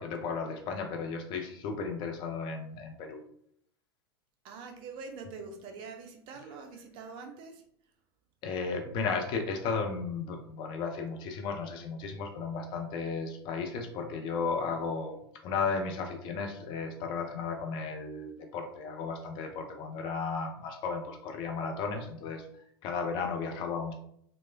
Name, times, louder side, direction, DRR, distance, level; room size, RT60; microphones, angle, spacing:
voice 1, 0.0-3.2 8.4-15.2 15.4-22.4 22.8-23.9, left 5 dB, 35° left, 3 dB, 0.4 m, -34 dB
voice 2, 4.4-7.6, right 4 dB, 40° right, 5 dB, 0.4 m, -44 dB
3.0 x 2.1 x 2.3 m, 0.68 s
figure-of-eight pair, 90°, 13 cm